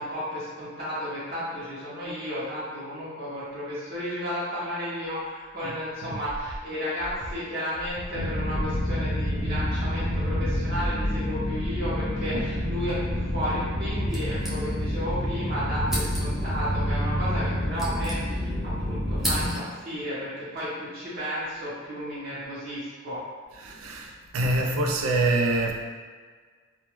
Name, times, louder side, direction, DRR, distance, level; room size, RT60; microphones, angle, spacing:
voice 1, 0.0-23.2, equal, 50° right, -9 dB, 0.7 m, -33 dB
Breathing, 6.2-6.6 7.0-7.3 7.7-8.1 8.5-8.8 9.2-9.6 10.0-10.3 10.7-11.1 11.5-11.8 12.2-12.6 13.0-13.3 13.7-14.1, equal, 65° left, 0.4 m, -39 dB
sound 1, 8.1-19.5, equal, 45° left, 0.8 m, -28 dB
voice 2, 12.3-12.8 23.5-25.7, right 2 dB, 85° right, 1 dB, 0.4 m, -26 dB
sound 2, 14.1-15.1 15.3-15.4 15.8-16.5 17.4-18.6 18.9-19.9, equal, ahead, 0.5 m, -34 dB
2.2 x 2.1 x 3.0 m, 1.5 s
head